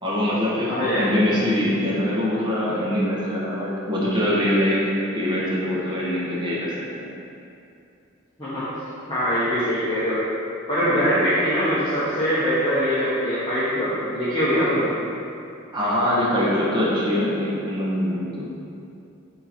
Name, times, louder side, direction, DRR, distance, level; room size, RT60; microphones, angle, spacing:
voice 1, 0.0-7.1 10.8-11.1 15.7-18.5, left 1 dB, 20° right, -7 dB, 1.2 m, -23 dB
voice 2, 0.7-1.1 8.4-8.7 9.1-10.2 10.7-14.9, equal, 20° left, -14 dB, 1.3 m, -22 dB
8.7 x 3.1 x 4.2 m, 2.6 s
head